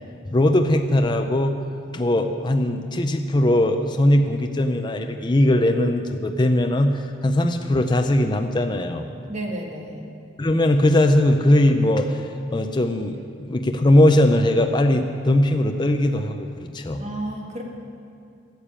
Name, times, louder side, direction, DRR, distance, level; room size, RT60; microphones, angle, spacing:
voice 1, 0.3-1.6 1.9-9.1 10.4-17.0, left 1 dB, 25° left, 5 dB, 0.5 m, -20 dB
voice 2, 9.3-10.1 17.0-17.6, right 1 dB, 40° right, 1 dB, 1.6 m, -31 dB
13.5 x 6.9 x 8.7 m, 2.5 s
head